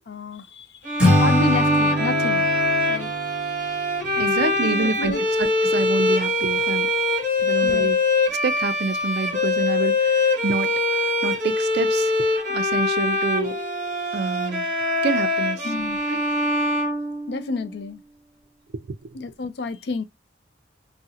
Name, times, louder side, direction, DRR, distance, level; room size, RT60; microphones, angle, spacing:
voice 1, 0.1-2.5 2.9-3.1 4.2-5.2 7.6-7.9 15.6-16.0 17.3-18.0 19.1-20.0, left 3 dB, 55° left, 0.4 m, -30 dB
sound 1, 0.8-17.7, left 2 dB, 40° right, 1.0 m, -23 dB
Acoustic guitar / Strum, 1.0-4.3, equal, 5° right, 0.8 m, -23 dB
voice 2, 4.2-6.9 7.4-8.0 8.3-10.7 11.2-12.1 12.5-13.6 14.1-14.7 15.0-15.7 16.1-16.2 18.9-19.0, right 4 dB, 55° right, 0.4 m, -27 dB
3.6 x 2.1 x 2.7 m
head